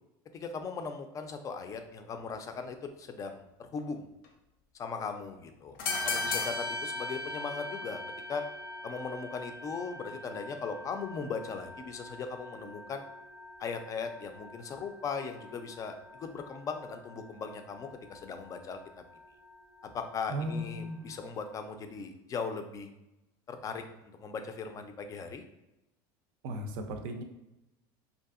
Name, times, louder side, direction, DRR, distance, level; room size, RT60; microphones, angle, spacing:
voice 1, 0.3-4.1 4.7-8.0 8.3-8.4 8.8-13.0 13.6-18.8 19.9-22.9 23.5-25.4, left 5 dB, 30° left, 7 dB, 0.3 m, -38 dB
sound 1, 4.2-4.3 5.7-21.6, left 2 dB, 80° left, 0.6 m, -41 dB
voice 2, 20.3-21.0 26.4-27.2, right 1 dB, 75° right, 5 dB, 0.4 m, -36 dB
2.7 x 2.5 x 2.4 m, 0.93 s
supercardioid pair, 115°, 11 cm